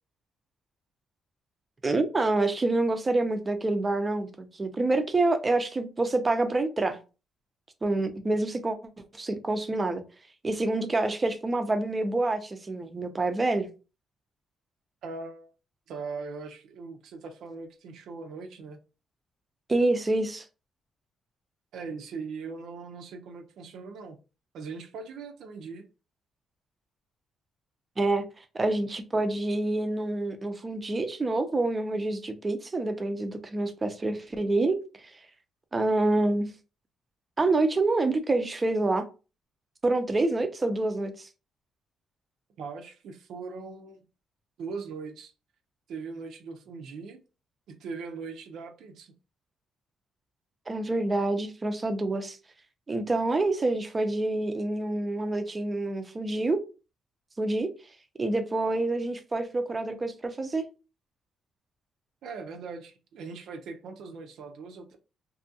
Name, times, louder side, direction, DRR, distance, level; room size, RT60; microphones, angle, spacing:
voice 1, 1.8-7.0 7.8-8.8 9.1-10.0 10.4-13.7 19.7-20.4 28.0-34.8 35.7-36.5 37.4-39.1 39.8-41.3 50.7-52.4 52.9-56.6 57.4-57.7 58.2-60.6, right 2 dB, 25° right, 0.5 m, -27 dB
voice 2, 15.0-15.5 15.9-18.8 21.7-24.2 24.5-25.8 42.6-44.0 44.6-45.3 45.9-47.2 47.7-49.1 62.2-65.0, right 4 dB, 75° right, 0.5 m, -40 dB
2.7 x 2.4 x 2.6 m
cardioid pair, 90°, 0 cm